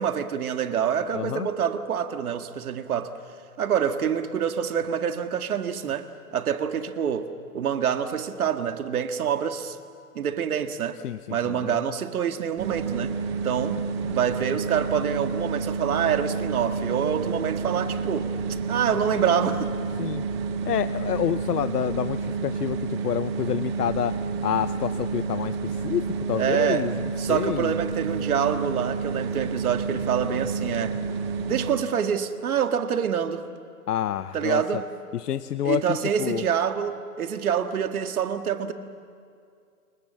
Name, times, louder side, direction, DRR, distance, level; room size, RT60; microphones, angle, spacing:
voice 1, 0.0-3.1 3.6-9.8 10.2-11.0 11.3-13.1 13.4-18.3 18.7-19.7 26.4-26.9 27.2-31.0 31.5-33.4 34.3-34.9 35.6-38.7, right 8 dB, 70° right, 1.9 m, -26 dB
voice 2, 1.1-1.5 11.0-11.8 20.0-20.2 20.7-24.1 24.4-27.7 33.9-34.6 35.1-36.4, left 10 dB, 90° left, 0.9 m, -28 dB
sound 1, 12.6-31.9, right 5 dB, 20° right, 0.9 m, -30 dB
29.0 x 24.0 x 7.5 m
hypercardioid pair, 165°, 46 cm